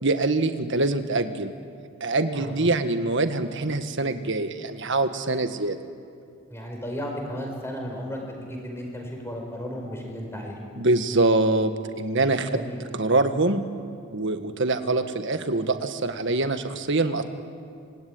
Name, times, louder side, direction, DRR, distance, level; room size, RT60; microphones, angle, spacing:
voice 1, 0.0-1.5 2.0-5.8 10.8-11.7 12.0-12.5 13.0-13.6 14.1-17.2, right 2 dB, 60° right, 8 dB, 1.7 m, -24 dB
voice 2, 2.4-2.8 6.5-10.6 12.5-12.8, equal, 10° left, 1 dB, 5.4 m, -34 dB
27.0 x 21.0 x 9.6 m, 2.4 s
head